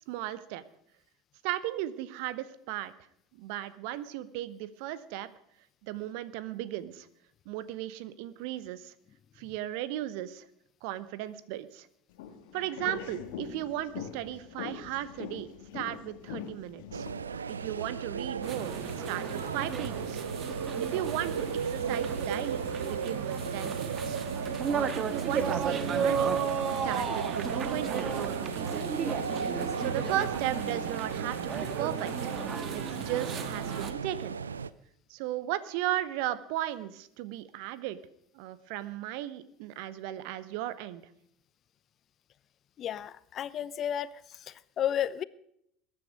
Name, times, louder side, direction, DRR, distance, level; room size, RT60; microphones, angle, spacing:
voice 1, 0.1-0.6 1.4-2.9 3.4-5.3 5.8-7.1 7.5-8.9 9.4-10.5 10.8-11.9 12.5-15.5 15.7-17.1 17.5-18.8 19.1-20.2 20.8-22.6 22.9-24.2 24.7-26.4 26.8-29.0 29.8-32.3 32.7-34.3 35.1-38.0 38.3-41.0, right 13 dB, 60° right, 15 dB, 1.0 m, -36 dB
sound 1, 12.1-17.4, left 9 dB, 65° left, 1.6 m, -42 dB
sound 2, 16.9-34.7, right 6 dB, 85° right, 0.5 m, -35 dB
sound 3, 18.4-33.9, right 6 dB, 35° right, 1.6 m, -34 dB
voice 2, 42.8-44.1 44.5-45.2, left 10 dB, 40° left, 18 dB, 0.7 m, -32 dB
21.5 x 9.7 x 5.3 m, 0.74 s
figure-of-eight pair, 70°, 0 cm